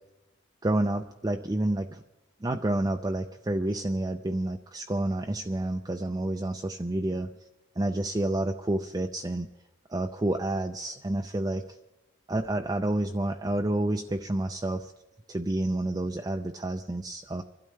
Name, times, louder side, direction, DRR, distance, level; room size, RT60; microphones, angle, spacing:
voice 1, 0.6-2.0 2.4-7.3 7.8-9.5 9.9-11.6 12.3-14.9 15.3-17.4, right 1 dB, 20° right, 4 dB, 0.4 m, -29 dB
25.5 x 12.5 x 3.3 m, 1.0 s
head